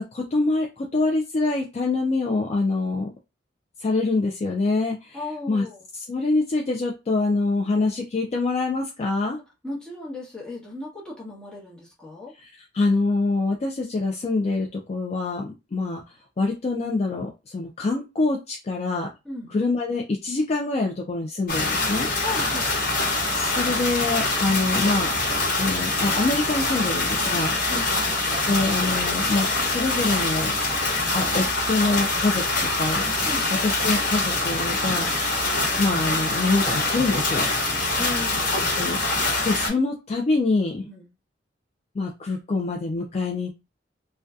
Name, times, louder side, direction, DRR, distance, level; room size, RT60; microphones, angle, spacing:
voice 1, 0.0-3.1 3.8-5.6 5.9-9.4 12.3-16.0 16.4-19.1 19.5-22.1 23.3-25.1 25.6-27.6 28.5-30.5 31.1-33.1 33.6-35.2 35.8-37.5 38.5-39.0 39.4-40.9 41.9-43.5, left 3 dB, 35° left, 0.3 m, -25 dB
voice 2, 5.1-5.8 9.6-12.3 19.3-19.5 22.2-23.0 27.7-28.0 33.3-33.5 35.5-35.7 38.0-38.7 40.8-41.1, left 2 dB, 5° left, 0.9 m, -36 dB
sound 1, 21.5-39.7, left 2 dB, 50° left, 1.1 m, -24 dB
2.5 x 2.2 x 2.3 m
head